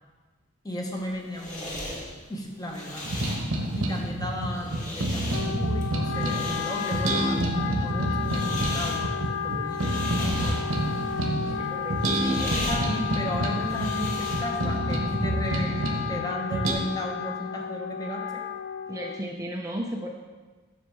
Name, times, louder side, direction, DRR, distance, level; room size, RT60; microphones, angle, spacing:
voice 1, 0.6-1.9 2.3-3.3 3.7-10.8 11.5-11.6 12.2-18.4, equal, 20° left, 0 dB, 0.9 m, -35 dB
sound 1, 0.9-14.7, left 1 dB, 40° left, 1.3 m, -38 dB
sound 2, 3.0-6.5 6.9-11.6 11.9-16.1 16.5-16.7, right 1 dB, 80° right, 1.0 m, -28 dB
Wind instrument woodwind instrument, 5.3-19.4, left 7 dB, 60° left, 0.4 m, -33 dB
voice 2, 11.4-12.7 18.9-20.1, right 1 dB, 15° right, 0 dB, 0.4 m, -35 dB
7.5 x 6.3 x 3.5 m, 1.3 s
head